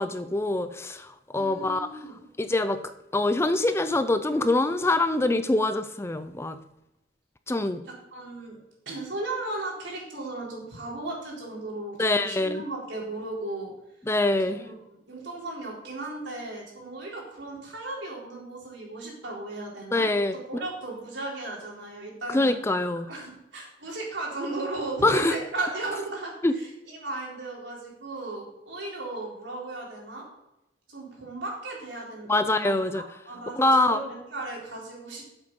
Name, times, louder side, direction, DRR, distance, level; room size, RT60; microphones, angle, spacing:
voice 1, 0.0-1.9 2.4-2.8 3.1-6.6 7.5-7.8 12.0-12.6 14.1-14.6 19.9-20.3 22.3-23.1 25.0-25.3 26.4-26.5 32.3-33.0 33.6-34.0, left 2 dB, 15° left, 10 dB, 0.4 m, -24 dB
voice 2, 1.3-2.2 7.9-8.6 8.9-13.7 14.5-14.8 15.1-20.1 20.3-22.6 23.1-30.3 30.9-35.3, right 2 dB, 75° right, -3 dB, 3.8 m, -36 dB
8.1 x 8.0 x 5.4 m, 0.91 s
head